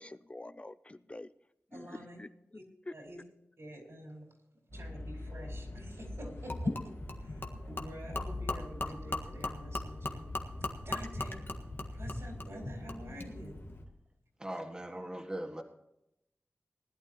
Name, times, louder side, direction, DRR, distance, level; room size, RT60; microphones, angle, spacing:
voice 1, 0.0-1.3 1.7-2.9, left 2 dB, 25° left, 13 dB, 0.5 m, -47 dB
voice 2, 1.7-2.2 2.5-2.6 2.9-3.2 3.6-4.3 4.7-11.4 11.9-13.6, equal, 75° right, -1 dB, 4.6 m, -48 dB
sound 1, 4.7-13.8, left 1 dB, 85° left, 2.2 m, -48 dB
sound 2, 4.7-12.3, left 2 dB, 55° right, 2.4 m, -46 dB
Gurgling / Liquid, 6.5-13.3, left 2 dB, 50° left, 1.6 m, -39 dB
voice 3, 14.4-15.6, right 1 dB, 15° right, 3 dB, 1.8 m, -40 dB
20.0 x 11.5 x 2.9 m, 0.83 s
wide cardioid pair, 95°, 5 cm